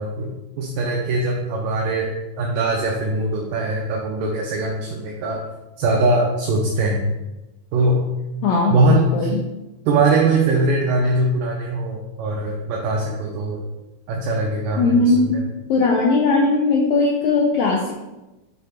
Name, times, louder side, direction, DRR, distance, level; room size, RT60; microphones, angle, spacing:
voice 1, 0.0-2.1 2.4-5.4 5.8-7.1 7.7-8.1 8.7-9.3 9.9-13.6 14.1-15.4, right 2 dB, 75° right, -1 dB, 2.2 m, -21 dB
voice 2, 8.4-9.4 14.8-15.4 15.7-17.9, left 3 dB, 90° left, -2 dB, 1.6 m, -19 dB
8.2 x 7.7 x 2.5 m, 1.0 s
omnidirectional pair, 4.4 m